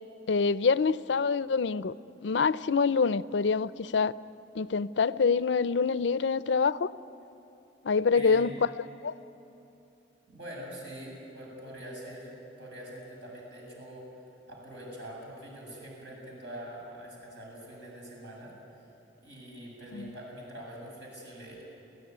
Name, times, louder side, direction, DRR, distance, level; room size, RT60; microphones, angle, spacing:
voice 1, 0.3-1.9 2.2-4.2 4.5-6.9 7.8-8.5 9.0-9.1 19.9-20.1, left 5 dB, 70° left, 16 dB, 0.5 m, -26 dB
voice 2, 8.1-8.5 10.3-14.2 14.5-18.6 19.2-21.6, equal, 70° right, -2 dB, 7.6 m, -44 dB
29.0 x 16.0 x 9.5 m, 2.9 s
head